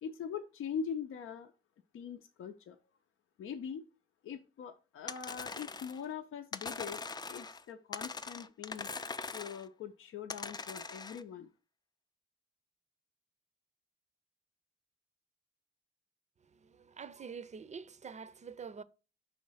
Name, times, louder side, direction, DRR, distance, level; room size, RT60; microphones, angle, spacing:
voice 1, 0.0-1.5 1.9-2.8 3.4-3.8 4.2-7.0 7.3-11.5, left 7 dB, 80° left, 0.6 m, -42 dB
sound 1, 5.1-6.0 6.5-7.6 7.9-9.7 10.3-11.2, left 4 dB, 20° left, 0.4 m, -42 dB
voice 2, 16.5-18.8, right 6 dB, 35° right, 0.5 m, -46 dB
5.6 x 3.2 x 5.5 m
cardioid pair, 90°, 21 cm